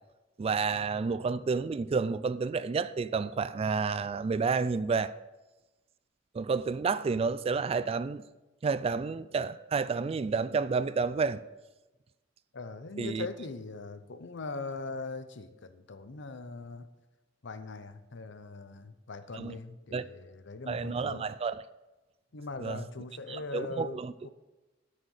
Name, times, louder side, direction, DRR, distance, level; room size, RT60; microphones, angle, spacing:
voice 1, 0.4-5.1 6.3-8.2 8.6-11.4 13.0-13.3 19.3-19.6 19.9-20.0 20.7-21.6 22.6-22.8 23.3-24.1, right 5 dB, 30° right, 0.3 m, -30 dB
voice 2, 12.5-16.9 17.4-21.3 22.3-24.3, left 3 dB, 65° left, 0.7 m, -41 dB
9.1 x 6.5 x 6.5 m
head